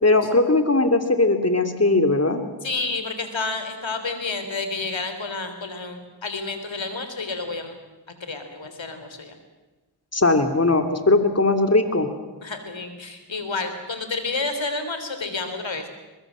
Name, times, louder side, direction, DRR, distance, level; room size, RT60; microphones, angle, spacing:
voice 1, 0.0-2.4 10.1-12.1, left 2 dB, 35° left, 7 dB, 3.0 m, -19 dB
voice 2, 2.6-7.8 8.3-9.3 12.4-15.9, left 3 dB, 75° left, 8 dB, 3.7 m, -30 dB
23.0 x 21.0 x 7.6 m, 1.2 s
cardioid pair, 40°, 46 cm